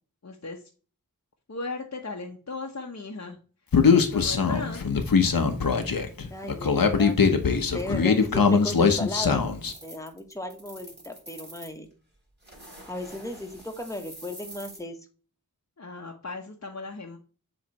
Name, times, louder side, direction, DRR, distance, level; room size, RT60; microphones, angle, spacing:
voice 1, 0.2-0.6 1.5-3.4 3.9-4.8 15.8-17.2, left 3 dB, 45° left, 0 dB, 1.0 m, -37 dB
Human voice, 3.7-9.7, left 5 dB, 70° left, 1.0 m, -21 dB
voice 2, 6.3-9.5 9.8-11.9 12.9-15.0, left 1 dB, 10° left, 4 dB, 1.3 m, -36 dB
sound 1, 9.7-11.8 12.4-14.8, right 1 dB, 30° right, 3.6 m, -46 dB
7.6 x 3.2 x 4.1 m, 0.38 s
wide cardioid pair, 55°, 36 cm